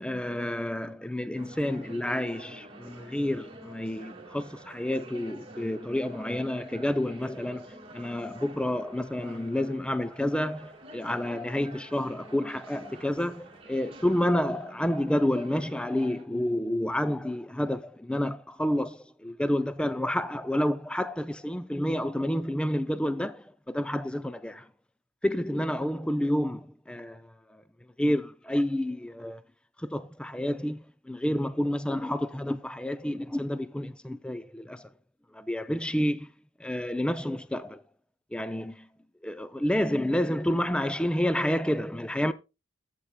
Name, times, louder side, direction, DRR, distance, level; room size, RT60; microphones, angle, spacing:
voice 1, 0.0-24.7 25.2-27.6 28.0-29.4 29.8-34.9 35.3-36.3 36.6-37.8 38.3-38.9 39.2-42.3, left 1 dB, 5° left, 0.4 m, -29 dB
sound 1, 1.4-16.3, right 1 dB, 30° right, 1.7 m, -49 dB
14.5 x 8.3 x 2.2 m
head